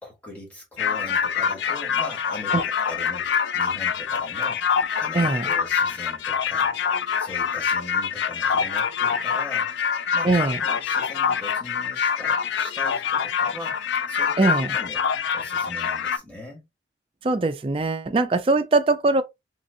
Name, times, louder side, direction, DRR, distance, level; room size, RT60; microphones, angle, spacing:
voice 1, 0.0-4.6 5.0-6.7 7.2-9.7 10.1-10.3 10.6-15.0 15.3-16.7, left 1 dB, 10° left, 1.2 m, -40 dB
sound 1, 0.8-16.2, left 7 dB, 80° left, 0.4 m, -25 dB
voice 2, 5.1-5.5 10.2-10.6 14.4-14.8 17.2-19.2, right 3 dB, 30° right, 0.3 m, -21 dB
3.2 x 2.8 x 2.6 m
head